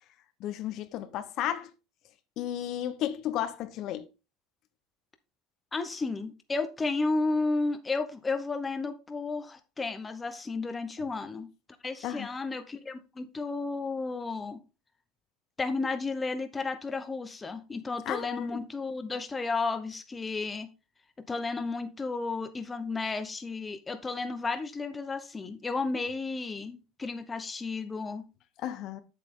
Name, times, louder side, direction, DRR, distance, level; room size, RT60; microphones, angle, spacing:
voice 1, 0.4-1.7 2.4-4.0 12.0-12.3 18.1-18.6 28.6-29.0, left 11 dB, 55° left, 1.0 m, -33 dB
voice 2, 5.7-11.5 11.8-14.6 15.6-20.7 21.3-28.2, left 3 dB, 15° left, 0.9 m, -33 dB
8.0 x 6.6 x 3.8 m
supercardioid pair, 120°, 0 cm